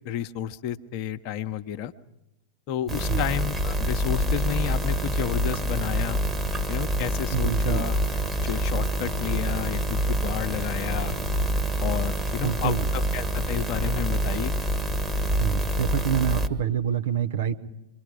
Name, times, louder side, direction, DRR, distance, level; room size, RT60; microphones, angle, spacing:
voice 1, 0.0-1.9 2.7-6.2 6.7-8.0 8.4-11.1 11.8-14.5, left 10 dB, 45° left, 10 dB, 1.0 m, -31 dB
sound 1, 2.9-16.5, right 1 dB, 10° right, 1.7 m, -26 dB
voice 2, 7.3-7.9 12.4-12.8 15.4-17.6, right 9 dB, 60° right, 7 dB, 1.3 m, -27 dB
26.5 x 24.0 x 5.0 m, 0.89 s
figure-of-eight pair, 90°, 0 cm